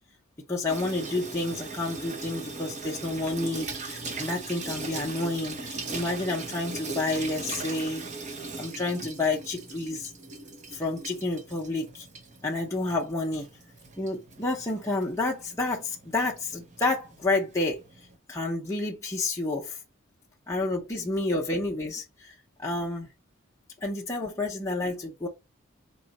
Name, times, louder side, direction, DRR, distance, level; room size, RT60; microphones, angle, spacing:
voice 1, 0.5-8.0 8.6-10.1 10.7-12.1 12.4-13.5 14.0-17.8 18.3-19.8 20.5-23.1 23.8-25.3, left 2 dB, 15° left, 0.7 m, -30 dB
Water tap faucet / Sink (filling or washing), 0.7-18.2, right 3 dB, 35° right, 0.8 m, -39 dB
3.7 x 3.0 x 4.2 m
head